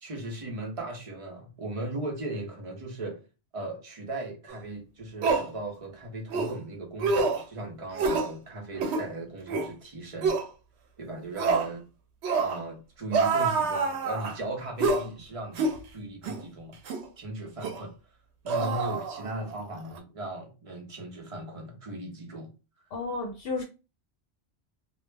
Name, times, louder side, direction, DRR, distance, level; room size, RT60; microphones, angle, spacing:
voice 1, 0.0-3.2 3.5-10.4 11.0-11.8 12.3-16.8 17.2-17.9 18.4-22.5, right 2 dB, 40° right, 0.6 m, -37 dB
sound 1, 4.5-4.6 5.2-5.5 6.3-6.5 7.0-7.4 7.9-8.3 8.8-9.0 9.5-9.7 10.2-10.5 11.4-11.7 12.2-12.6 13.1-14.4 14.8-15.1 15.6-15.8 16.2-16.4 16.9-17.0 17.6-17.8 18.5-19.5 19.8-20.0, right 4 dB, 85° right, 0.9 m, -27 dB
voice 2, 22.9-23.6, left 3 dB, 65° left, 0.8 m, -32 dB
2.3 x 2.0 x 3.2 m
omnidirectional pair, 1.1 m